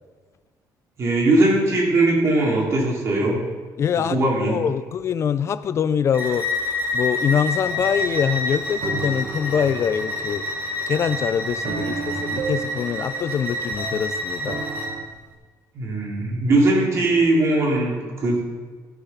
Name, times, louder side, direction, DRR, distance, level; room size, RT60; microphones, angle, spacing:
voice 1, 1.0-3.4 4.1-4.6 11.6-12.2 15.7-18.4, right 2 dB, 40° right, -3 dB, 3.3 m, -20 dB
voice 2, 3.8-6.5 6.9-10.4 10.9-14.7, left 8 dB, 40° left, 14 dB, 0.3 m, -24 dB
Bowed string instrument, 6.1-14.9, left 2 dB, 25° right, 2.5 m, -28 dB
sound 1, 7.7-15.1, right 5 dB, 60° right, 1.1 m, -34 dB
14.5 x 6.7 x 5.7 m, 1.5 s
cardioid pair, 140°, 7 cm